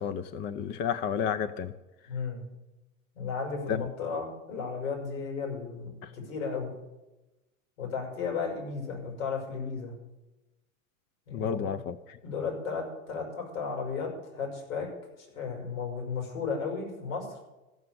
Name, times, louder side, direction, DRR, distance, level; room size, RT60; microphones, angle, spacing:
voice 1, 0.0-1.7 3.7-3.8 6.0-6.1 11.3-12.2, left 7 dB, 25° left, 12 dB, 0.5 m, -31 dB
voice 2, 2.1-2.4 3.1-6.7 7.8-9.9 11.3-11.7 12.2-14.9 15.2-17.4, left 5 dB, 70° left, 1 dB, 6.4 m, -34 dB
14.0 x 6.8 x 9.8 m, 1.0 s
figure-of-eight pair, 90°, 41 cm